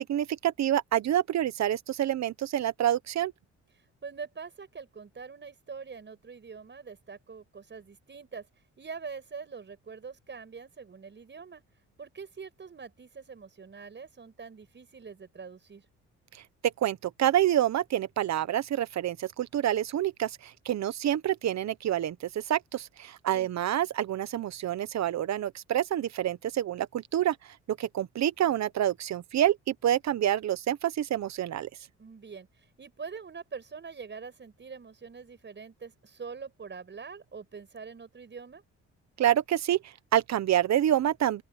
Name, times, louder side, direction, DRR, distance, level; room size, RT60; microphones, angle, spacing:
voice 1, 0.0-3.3 16.6-27.4 27.7-31.7 39.2-41.4, right 11 dB, 65° right, 1.1 m, -27 dB
voice 2, 3.8-8.5 8.8-11.6 12.0-15.9 23.3-23.5 32.0-38.6, right 5 dB, 35° right, 6.9 m, -44 dB
open air
cardioid pair, 90°, 30 cm